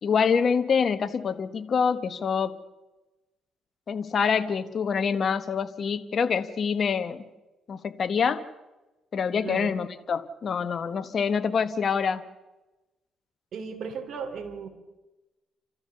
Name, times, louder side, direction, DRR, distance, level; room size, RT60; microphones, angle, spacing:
voice 1, 0.0-2.6 3.9-7.2 7.7-8.5 9.1-12.2, left 6 dB, 50° left, 10 dB, 1.3 m, -26 dB
voice 2, 9.4-9.7 13.5-14.7, right 6 dB, 65° right, 4 dB, 2.9 m, -35 dB
29.5 x 13.5 x 7.0 m, 1.1 s
cardioid pair, 90°, 0 cm